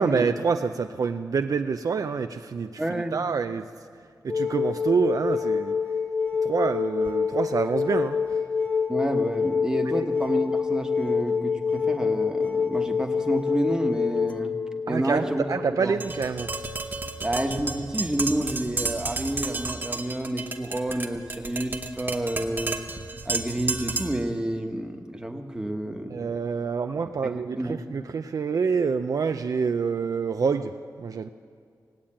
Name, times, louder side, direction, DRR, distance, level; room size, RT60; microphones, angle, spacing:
voice 1, 0.0-3.7 4.2-5.8 6.4-8.2 10.0-10.1 14.9-16.5 26.1-31.3, right 5 dB, 55° right, 7 dB, 0.4 m, -27 dB
voice 2, 2.8-3.2 8.9-14.6 14.9-15.5 15.8-16.0 17.2-22.8 23.2-26.2 27.2-27.3 27.6-27.8, right 1 dB, 10° right, 3 dB, 1.2 m, -29 dB
sound 1, 4.3-16.7 18.5-18.6, left 5 dB, 15° left, 0.4 m, -27 dB
Tap, 16.0-24.3, right 3 dB, 30° right, 1.0 m, -32 dB
18.5 x 8.8 x 8.7 m, 2.2 s
wide cardioid pair, 130°, 7 cm